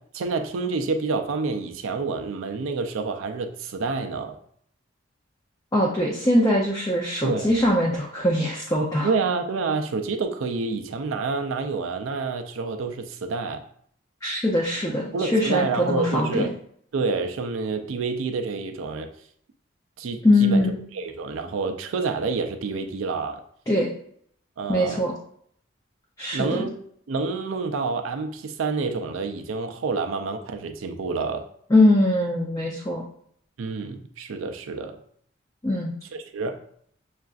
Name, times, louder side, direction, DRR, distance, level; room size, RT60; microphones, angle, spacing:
voice 1, 0.1-4.4 7.2-7.5 9.0-13.6 15.1-16.5 16.9-19.1 20.0-20.6 20.9-23.4 24.6-25.0 26.3-26.8 27.1-31.5 33.6-35.0 36.1-36.6, right 4 dB, 85° right, 6 dB, 0.4 m, -28 dB
voice 2, 5.7-9.1 14.2-16.5 20.2-20.8 23.7-23.9 24.7-25.1 26.2-26.7 31.7-33.0 35.6-35.9, left 1 dB, 15° left, -3 dB, 0.4 m, -22 dB
6.6 x 2.4 x 2.4 m, 0.64 s
head